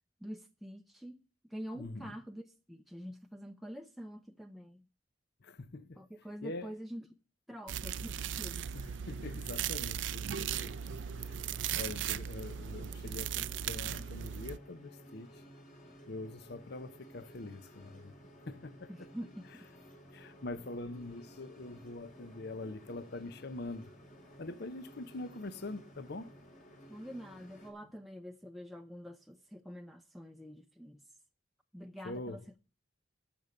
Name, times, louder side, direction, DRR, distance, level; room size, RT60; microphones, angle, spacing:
voice 1, 0.2-1.2 1.5-4.8 6.0-7.1 7.5-8.7 18.9-19.7 26.9-31.0 31.7-32.6, equal, ahead, 0.6 m, -46 dB
voice 2, 1.7-2.2 5.4-6.0 6.4-6.7 8.7-10.8 11.2-11.4 11.7-15.3 16.1-18.1 18.5-19.1 20.1-23.9 24.4-26.3 32.0-32.4, left 2 dB, 60° left, 0.8 m, -44 dB
sound 1, 7.7-14.6, right 9 dB, 75° right, 0.4 m, -37 dB
sound 2, 10.5-27.7, equal, 45° left, 2.9 m, -56 dB
13.5 x 5.2 x 7.1 m
head